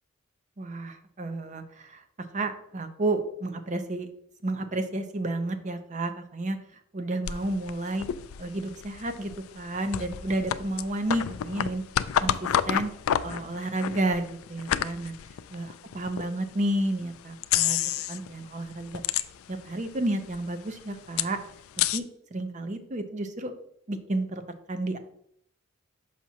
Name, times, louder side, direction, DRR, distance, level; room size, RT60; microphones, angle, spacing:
voice 1, 0.6-2.0 2.3-4.1 4.4-6.6 6.9-8.1 8.4-11.8 12.2-12.9 13.2-15.1 15.5-15.7 15.9-17.8 18.1-19.0 19.5-21.4 21.9-22.1 22.3-23.5 23.9-24.4 24.7-25.0, right 2 dB, 35° right, 8 dB, 0.6 m, -31 dB
sound 1, 7.3-16.3 16.8-16.9 17.4-18.3 18.6-19.7 20.0-20.1 20.3-22.0, left 10 dB, 75° left, 0.3 m, -29 dB
6.0 x 5.9 x 2.8 m, 0.71 s
head